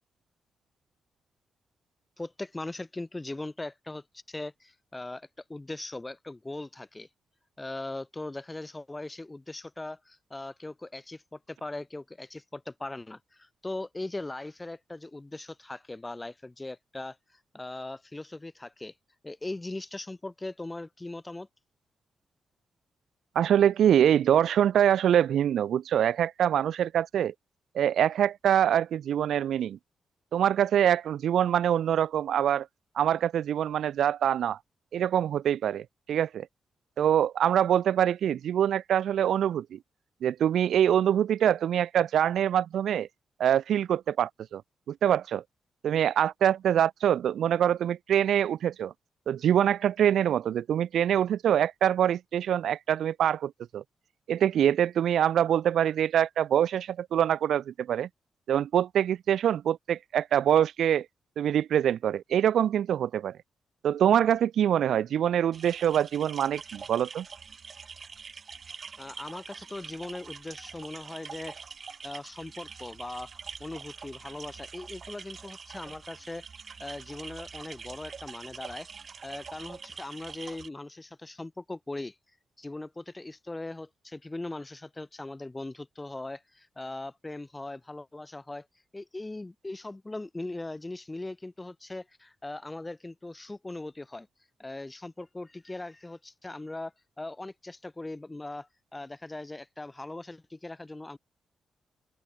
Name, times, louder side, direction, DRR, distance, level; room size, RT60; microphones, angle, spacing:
voice 1, 2.2-7.1 7.6-18.9 19.2-21.5 69.0-71.6 72.0-73.3 73.6-76.5 76.8-78.9 79.2-82.2 82.6-88.7 88.9-94.3 94.6-101.2, left 2 dB, 20° left, 1.9 m, -40 dB
voice 2, 23.4-27.3 27.7-29.8 30.3-32.7 33.0-34.6 34.9-36.5 37.0-39.8 40.2-43.1 43.4-44.6 44.9-45.4 45.8-48.9 49.3-53.8 54.3-58.1 58.5-61.1 61.4-63.4 63.8-67.3, right 10 dB, 80° right, 0.4 m, -24 dB
sound 1, 65.5-80.7, right 5 dB, 50° right, 1.1 m, -45 dB
open air
cardioid pair, 60°, 0 cm